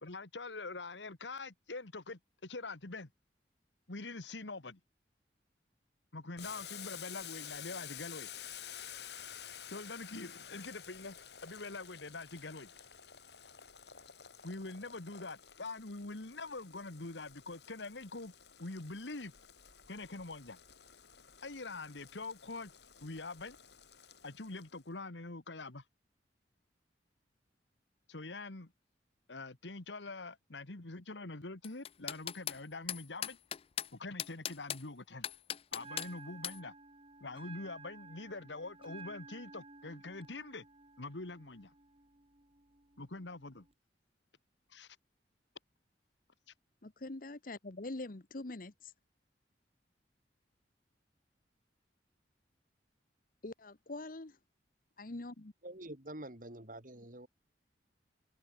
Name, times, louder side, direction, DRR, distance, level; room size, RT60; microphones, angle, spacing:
voice 1, 0.0-3.1 3.9-4.8 6.1-8.3 9.7-11.2 11.4-12.7 14.4-18.3 18.6-19.3 19.9-20.6 21.4-22.7 23.0-23.6 24.2-25.8 28.1-28.7 29.3-33.4 33.9-35.3 35.7-36.7 37.2-40.7 41.0-41.7 43.0-43.7 44.7-45.0, left 3 dB, 85° left, 1.8 m, -44 dB
Boiling, 6.4-24.8, left 9 dB, 65° left, 5.6 m, -51 dB
sound 1, 31.6-32.6 32.9-33.9 34.2-34.8 35.2-36.1 36.4-36.6, left 10 dB, 35° left, 0.4 m, -38 dB
Bell, 35.7-43.7, right 4 dB, 30° right, 3.6 m, -54 dB
voice 2, 46.8-48.7 53.4-54.4 55.0-55.5, left 2 dB, 50° left, 1.1 m, -44 dB
voice 3, 55.6-57.3, right 1 dB, 50° right, 3.7 m, -47 dB
head